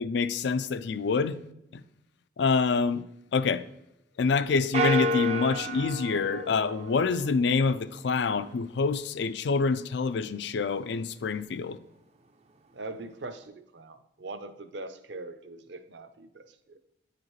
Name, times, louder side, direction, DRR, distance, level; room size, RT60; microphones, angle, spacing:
voice 1, 0.0-1.4 1.7-1.8 2.4-3.0 3.3-3.6 4.2-11.8, left 4 dB, 70° left, 0.4 m, -26 dB
sound 1, 4.7-7.4, equal, 35° right, 0.4 m, -30 dB
voice 2, 12.7-16.8, right 2 dB, 70° right, 0.6 m, -42 dB
9.6 x 5.0 x 3.1 m
head